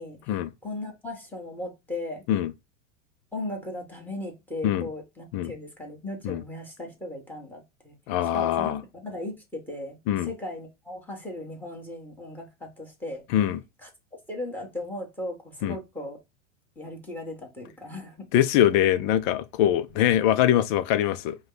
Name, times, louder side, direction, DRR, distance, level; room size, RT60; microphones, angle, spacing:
voice 1, 0.0-2.2 3.3-8.0 8.3-8.8 9.0-10.0 10.2-13.2 13.8-13.9 14.3-16.2 16.7-18.3, left 1 dB, 5° left, 1.6 m, -37 dB
voice 2, 8.1-8.8 10.1-10.3 13.3-13.6 15.6-15.8 18.3-21.4, left 11 dB, 40° left, 0.6 m, -23 dB
5.0 x 2.4 x 3.9 m
supercardioid pair, 130°, 40 cm